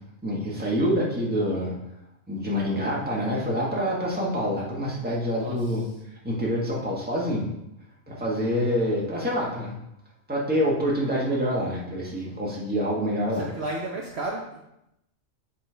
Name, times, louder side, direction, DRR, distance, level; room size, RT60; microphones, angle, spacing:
voice 1, 0.2-1.7 2.3-5.8 6.2-7.5 8.1-9.7 10.3-13.5, equal, 5° right, -4 dB, 1.5 m, -26 dB
voice 2, 5.4-5.8 13.4-14.6, right 2 dB, 55° right, -1 dB, 1.1 m, -33 dB
7.3 x 4.2 x 5.0 m, 0.84 s
omnidirectional pair, 1.4 m